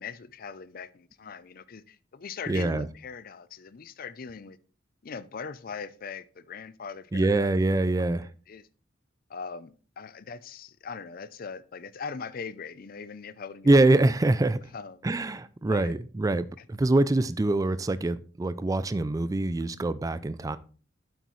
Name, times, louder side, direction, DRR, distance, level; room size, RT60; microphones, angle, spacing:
voice 1, 0.0-4.6 5.0-7.5 8.0-8.6 9.3-13.7 14.7-15.0 15.7-15.9, left 5 dB, 50° left, 0.5 m, -40 dB
voice 2, 2.5-2.9 7.1-8.3 13.7-14.6 15.0-20.6, right 2 dB, 20° right, 0.3 m, -24 dB
8.1 x 8.0 x 3.1 m
head